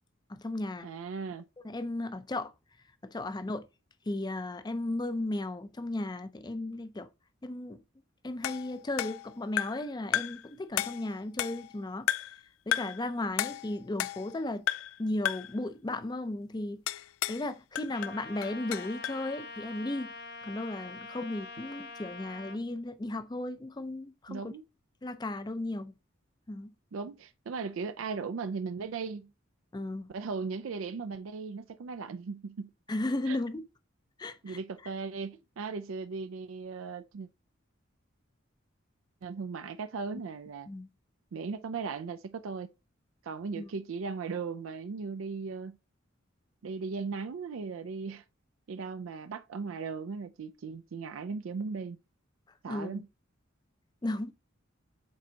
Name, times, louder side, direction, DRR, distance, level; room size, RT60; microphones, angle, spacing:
voice 1, 0.3-0.9 1.6-2.5 3.0-3.7 4.1-7.1 7.4-7.8 8.2-12.1 12.7-14.6 15.0-16.8 17.3-20.1 20.4-24.5 25.0-25.9 26.5-26.7 29.7-30.1 32.9-33.6 34.2-34.6 40.7-40.9 43.5-43.7 52.7-53.0 54.0-54.3, left 2 dB, 20° left, 0.5 m, -35 dB
voice 2, 0.8-1.5 24.3-24.6 26.9-29.3 30.1-32.7 33.3-33.4 34.4-37.3 39.2-40.7 41.3-42.7 43.2-45.8 46.6-48.2 48.7-52.0 52.6-53.1, right 5 dB, 75° right, 0.4 m, -37 dB
sound 1, 8.4-9.9 10.1-10.5 10.8-11.7 12.1-12.4 12.7-13.0 13.4-14.4 14.7-15.0 15.3-15.6 16.9-17.5 17.8-19.2, left 12 dB, 80° left, 0.3 m, -33 dB
Trumpet, 17.9-22.6, left 3 dB, 55° left, 0.8 m, -44 dB
7.4 x 4.5 x 2.8 m
head